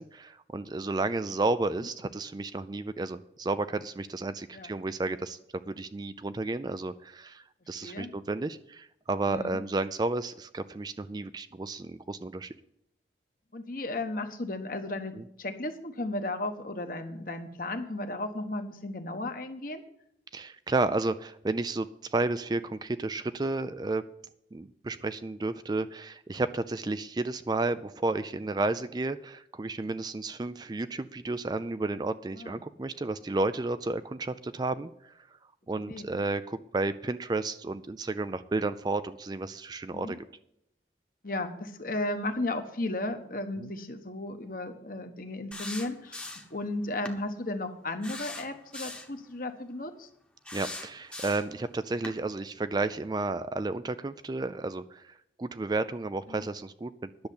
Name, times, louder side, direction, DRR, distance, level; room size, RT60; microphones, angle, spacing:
voice 1, 0.0-5.4 5.7-12.5 15.1-15.2 20.3-24.0 24.5-35.1 35.7-40.2 43.6-43.7 50.5-57.1, right 2 dB, 25° right, 12 dB, 0.3 m, -32 dB
voice 2, 13.5-15.1 15.4-19.8 32.3-32.6 35.7-36.1 39.9-40.2 41.2-50.1 56.3-56.5, left 2 dB, 50° left, 7 dB, 1.1 m, -35 dB
sound 1, 45.5-46.6 47.0-47.2 48.0-49.1 50.4-51.6 52.0-52.2, left 2 dB, 5° left, 1.0 m, -40 dB
10.5 x 6.9 x 8.4 m, 0.76 s
head